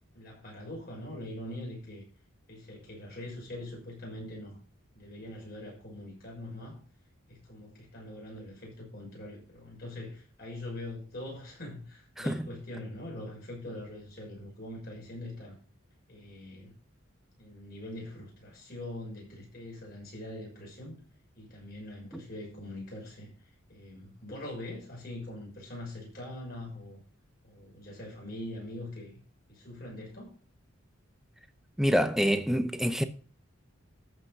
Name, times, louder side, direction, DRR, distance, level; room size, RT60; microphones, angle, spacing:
voice 1, 0.1-2.0 2.5-4.6 4.9-6.8 7.3-15.6 16.1-16.7 17.4-21.0 21.4-23.3 23.7-27.0 27.4-29.1 29.5-30.3, left 1 dB, 45° left, 6.5 m, -43 dB
voice 2, 31.8-33.0, equal, ahead, 0.7 m, -26 dB
13.5 x 5.8 x 5.6 m
head